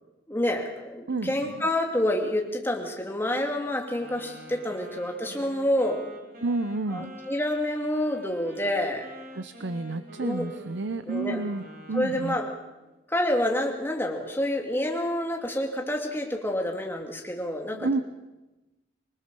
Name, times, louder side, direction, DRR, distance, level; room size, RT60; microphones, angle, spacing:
voice 1, 0.3-6.0 6.9-9.1 10.2-10.5 11.1-11.4 11.9-12.4 13.1-18.0, left 1 dB, 10° left, 1 dB, 2.4 m, -28 dB
voice 2, 1.1-1.6 6.4-7.1 9.4-12.4 17.7-18.0, right 3 dB, 65° right, 13 dB, 0.7 m, -30 dB
Wind instrument woodwind instrument, 4.0-12.6, right 1 dB, 50° right, 4.3 m, -46 dB
25.0 x 20.5 x 6.8 m, 1.1 s
head